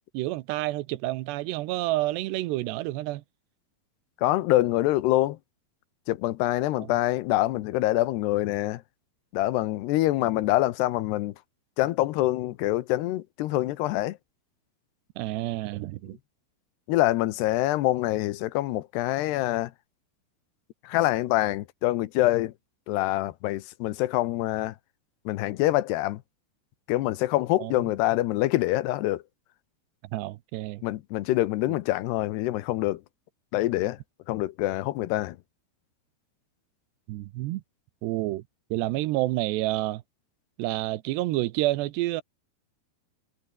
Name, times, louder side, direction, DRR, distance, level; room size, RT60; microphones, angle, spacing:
voice 1, 0.1-3.2 15.2-16.2 27.6-27.7 30.1-30.8 37.1-37.6 38.0-38.4 38.7-40.0 40.6-42.2, right 17 dB, 85° right, 3.0 m, -29 dB
voice 2, 4.2-5.4 6.1-8.8 9.3-11.3 11.8-14.2 16.9-19.7 20.8-22.5 22.9-24.8 25.3-26.2 26.9-29.2 30.8-33.0 33.5-34.0 34.3-35.4, left 16 dB, 85° left, 3.0 m, -25 dB
omnidirectional pair, 4.8 m